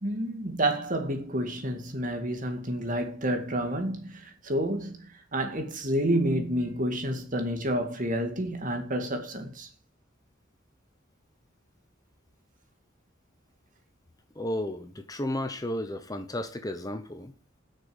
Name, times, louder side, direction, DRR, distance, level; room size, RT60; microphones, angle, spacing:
voice 1, 0.0-5.1 5.3-9.7, right 1 dB, 45° right, 2.1 m, -29 dB
voice 2, 14.3-17.3, left 1 dB, 20° left, 0.9 m, -33 dB
8.7 x 6.7 x 7.9 m
head